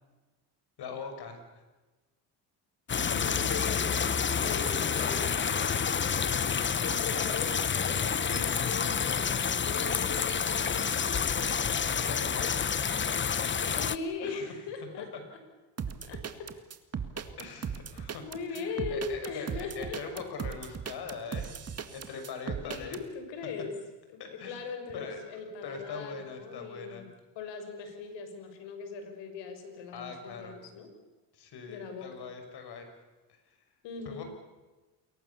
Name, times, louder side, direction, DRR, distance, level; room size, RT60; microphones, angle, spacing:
voice 1, 0.8-1.6 11.9-12.8 14.2-14.5 15.1-15.2 17.4-18.2 18.5-21.6 21.9-23.0 24.2-24.6 24.9-25.2 25.6-27.1 29.9-30.6 31.3-32.9 33.3-33.4 34.0-34.2, left 5 dB, 65° left, 6 dB, 6.0 m, -42 dB
sound 1, 2.9-14.0, left 7 dB, 25° left, 1.0 m, -29 dB
voice 2, 3.0-3.9 4.3-6.1 6.8-11.6 13.6-15.1 16.0-16.5 18.2-20.0 22.6-23.7 24.1-27.1 27.3-30.9 31.7-32.3 33.8-34.2, left 5 dB, 90° left, 6 dB, 6.1 m, -40 dB
sound 2, 15.8-23.0, right 7 dB, 35° right, 2.1 m, -37 dB
29.0 x 22.5 x 7.1 m, 1.2 s
cardioid pair, 115°, 42 cm